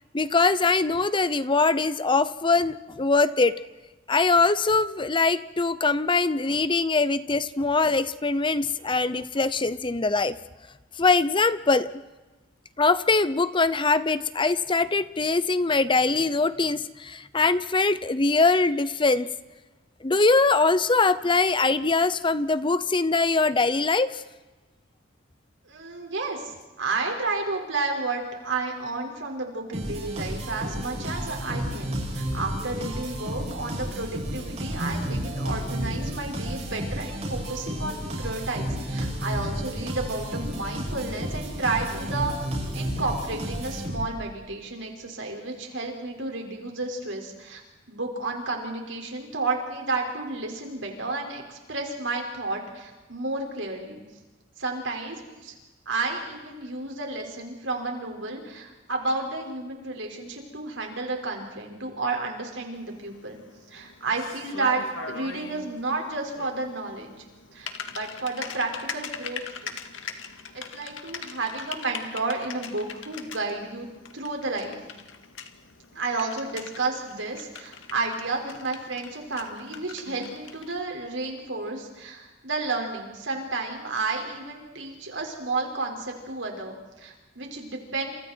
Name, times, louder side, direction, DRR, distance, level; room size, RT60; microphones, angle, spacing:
voice 1, 0.1-3.6 4.1-10.4 11.0-11.9 12.8-19.3 20.0-24.2, left 3 dB, 25° left, 14 dB, 0.7 m, -22 dB
voice 2, 25.7-42.3 42.7-47.6 47.9-54.0 54.6-55.5 55.9-63.4 63.7-67.1 67.5-69.8 70.5-74.8 75.9-88.1, right 3 dB, 75° right, 1 dB, 5.5 m, -31 dB
sound 1, 29.7-44.3, equal, 35° right, 7.9 m, -32 dB
Typing, 62.7-80.8, left 6 dB, 80° left, 2.0 m, -41 dB
29.5 x 28.0 x 4.6 m, 1.2 s
head